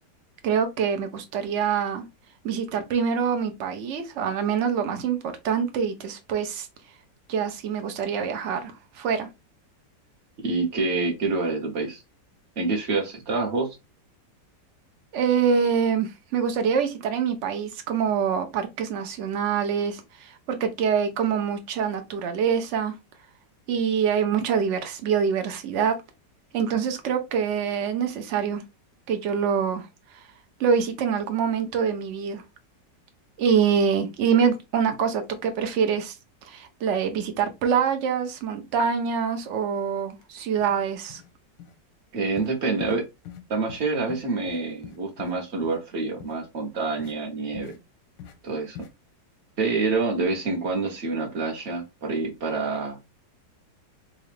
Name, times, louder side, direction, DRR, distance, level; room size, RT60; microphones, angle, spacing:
voice 1, 0.4-2.0 2.4-6.7 7.3-9.3 15.1-22.9 23.7-26.0 26.5-28.6 29.1-29.9 30.1-30.3 30.6-32.4 33.4-36.2 36.4-41.2, right 7 dB, 85° right, 0.6 m, -25 dB
voice 2, 10.4-12.0 12.6-13.7 42.1-43.0 43.5-47.7 48.4-48.9 49.6-53.0, right 3 dB, 45° right, 1.1 m, -27 dB
sound 1, 40.1-40.2 40.6-40.8 41.1-41.3 41.6-41.8 42.4-42.5 42.8-43.0 43.3-43.4 43.7-43.8 44.1-45.3 45.6-45.8 46.2-46.4 47.0-47.1 47.5-47.8 48.2-48.4 48.7-48.9, left 9 dB, 90° left, 1.4 m, -43 dB
4.1 x 2.4 x 3.2 m
omnidirectional pair, 1.9 m